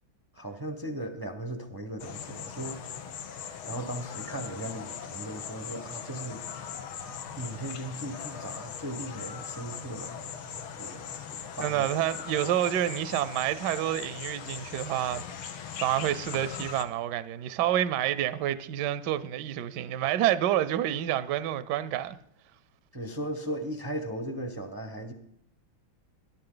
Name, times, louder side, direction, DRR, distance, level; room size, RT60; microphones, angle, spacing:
voice 1, 0.3-2.8 3.6-6.8 7.4-10.2 10.8-11.1 11.4-11.9 22.9-25.1, right 1 dB, 30° right, 0.4 m, -37 dB
sound 1, 2.0-16.8, left 7 dB, 85° left, 1.8 m, -40 dB
voice 2, 11.6-15.2 15.8-22.2, right 12 dB, 70° right, 1.1 m, -28 dB
21.0 x 11.0 x 3.9 m
omnidirectional pair, 2.3 m